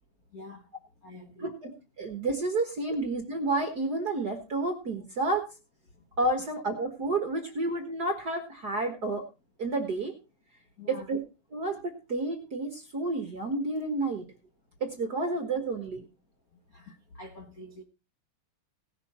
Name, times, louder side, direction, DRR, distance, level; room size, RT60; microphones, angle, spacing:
voice 1, 0.3-0.6 1.0-1.5 10.8-11.0 16.7-17.8, left 2 dB, 60° left, 0.9 m, -46 dB
voice 2, 1.4-1.7 2.0-5.4 6.2-9.3 9.6-10.1 10.9-11.2 11.5-14.3 14.8-16.0, right 2 dB, 45° right, 1.3 m, -30 dB
18.5 x 6.8 x 4.3 m
omnidirectional pair, 3.8 m